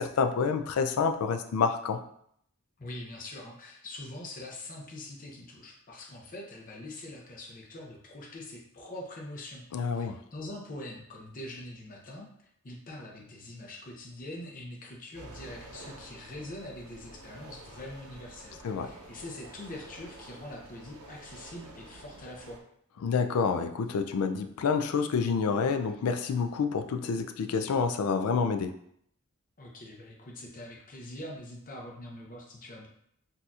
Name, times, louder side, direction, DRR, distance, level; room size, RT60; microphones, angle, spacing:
voice 1, 0.0-2.0 9.7-10.2 18.6-18.9 23.0-28.8, left 5 dB, 80° left, 7 dB, 0.4 m, -28 dB
voice 2, 2.8-9.6 9.9-12.3 12.6-22.6 29.6-32.9, left 1 dB, 40° left, -1 dB, 0.7 m, -43 dB
sound 1, 15.1-22.6, right 2 dB, 90° right, 0.6 m, -49 dB
4.0 x 2.7 x 2.4 m, 0.69 s
head